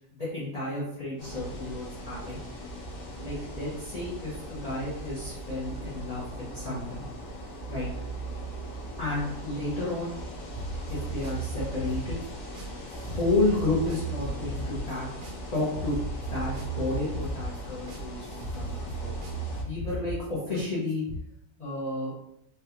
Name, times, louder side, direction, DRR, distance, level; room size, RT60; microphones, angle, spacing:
voice 1, 0.1-2.4 3.2-6.2 6.5-7.0 7.7-7.9 9.0-10.2 10.9-12.2 13.0-15.1 15.5-19.1 19.7-21.0 21.6-22.1, left 2 dB, 35° left, -8 dB, 0.7 m, -31 dB
sound 1, 1.2-19.6, right 1 dB, 55° left, 1.0 m, -40 dB
sound 2, 10.5-21.2, right 2 dB, 65° right, 1.0 m, -36 dB
3.5 x 2.3 x 2.8 m, 0.76 s
omnidirectional pair, 1.6 m